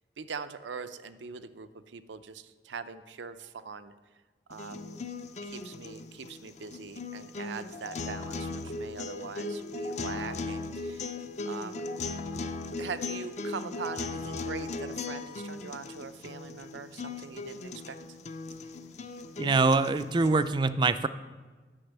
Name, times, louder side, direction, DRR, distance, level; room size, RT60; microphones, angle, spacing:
voice 1, 0.2-3.9 4.5-4.9 5.4-11.1 11.4-11.8 12.8-18.2, right 5 dB, 85° right, 11 dB, 0.6 m, -42 dB
sound 1, 4.5-20.5, left 3 dB, 40° left, 0.5 m, -38 dB
voice 2, 19.4-21.1, right 3 dB, 25° right, 13 dB, 0.3 m, -24 dB
9.9 x 6.1 x 8.0 m, 1.4 s
head